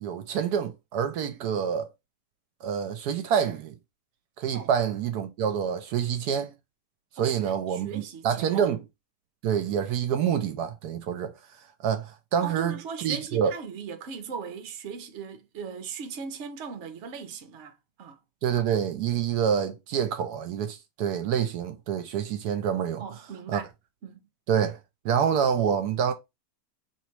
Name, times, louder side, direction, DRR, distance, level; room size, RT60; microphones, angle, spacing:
voice 1, 0.0-1.9 2.6-3.8 4.4-6.5 7.2-8.8 9.4-11.3 11.8-13.5 18.4-23.0 23.5-23.6 24.5-24.8 25.0-26.1, right 8 dB, 75° right, 1.1 m, -27 dB
voice 2, 7.2-8.7 12.4-18.2 23.0-23.7 24.0-24.3, right 6 dB, 55° right, 0.8 m, -39 dB
3.0 x 3.0 x 4.5 m
omnidirectional pair, 1.8 m